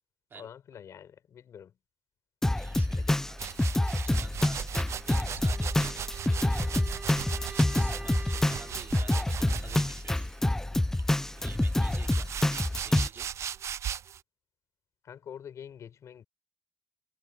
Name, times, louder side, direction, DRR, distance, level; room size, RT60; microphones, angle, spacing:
voice 1, 0.3-1.7 3.0-3.2 15.0-16.2, left 8 dB, 75° left, 6.3 m, -46 dB
Drum kit, 2.4-13.1, left 1 dB, 10° left, 0.5 m, -27 dB
voice 2, 2.6-3.4 3.8-6.0 6.3-10.3 11.4-13.3, right 5 dB, 45° right, 3.0 m, -50 dB
sound 1, 3.4-10.2 10.9-14.2, right 9 dB, 65° right, 0.4 m, -38 dB
Wind instrument woodwind instrument, 5.4-9.0, right 3 dB, 20° right, 2.2 m, -46 dB
wide cardioid pair, 130°, 5 cm